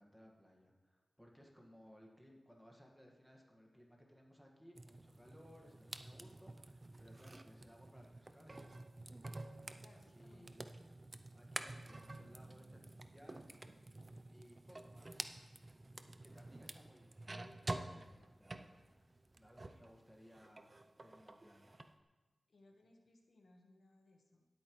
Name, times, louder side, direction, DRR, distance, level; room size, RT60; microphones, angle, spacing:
voice 1, 0.0-8.7 10.1-10.6 11.3-13.9 14.3-15.4 16.2-19.1 19.4-21.8, equal, ahead, 0 dB, 1.6 m, -62 dB
sound 1, 4.7-19.9 20.2-21.9, right 2 dB, 30° right, 0.5 m, -50 dB
voice 2, 9.7-10.7 22.5-24.5, left 2 dB, 65° left, 2 dB, 1.2 m, -66 dB
18.0 x 8.6 x 3.1 m, 1.3 s
wide cardioid pair, 105°, 0 cm